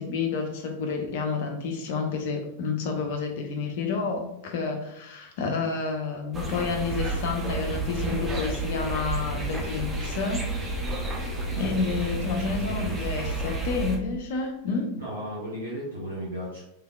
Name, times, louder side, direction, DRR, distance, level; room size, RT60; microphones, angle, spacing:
voice 1, 0.0-10.4 11.6-14.9, left 4 dB, 50° left, 3 dB, 0.7 m, -29 dB
sound 1, 6.3-14.0, right 2 dB, 20° right, 0.8 m, -31 dB
voice 2, 11.5-11.9 12.7-13.1 15.0-16.7, right 1 dB, 75° right, -5 dB, 0.8 m, -35 dB
3.5 x 3.3 x 2.3 m, 0.85 s
figure-of-eight pair, 90°, 0 cm